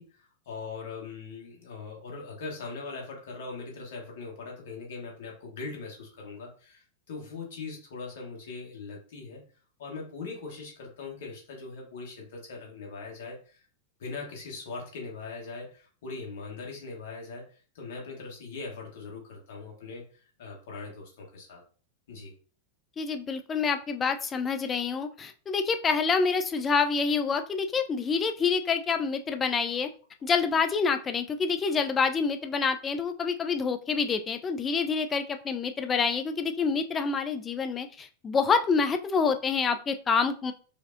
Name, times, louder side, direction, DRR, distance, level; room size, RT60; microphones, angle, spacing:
voice 1, 0.0-9.4 9.8-13.6 14.0-21.6 22.1-22.3, left 4 dB, 55° left, -1 dB, 1.2 m, -41 dB
voice 2, 23.0-29.9 30.2-40.5, left 5 dB, 20° left, 8 dB, 0.4 m, -27 dB
4.9 x 2.0 x 2.5 m, 0.39 s
figure-of-eight pair, 90°, 0 cm